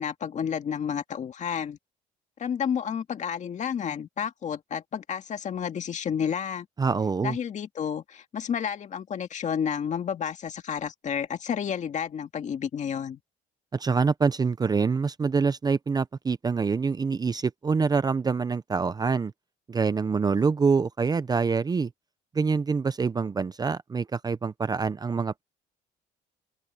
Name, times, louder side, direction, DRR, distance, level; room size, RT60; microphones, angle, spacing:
voice 1, 0.0-1.8 2.4-6.7 7.2-13.2, left 8 dB, 45° left, 2.0 m, -31 dB
voice 2, 6.8-7.4 13.7-19.3 19.7-21.9 22.3-25.4, right 5 dB, 25° right, 0.6 m, -25 dB
open air
cardioid pair, 110°, 17 cm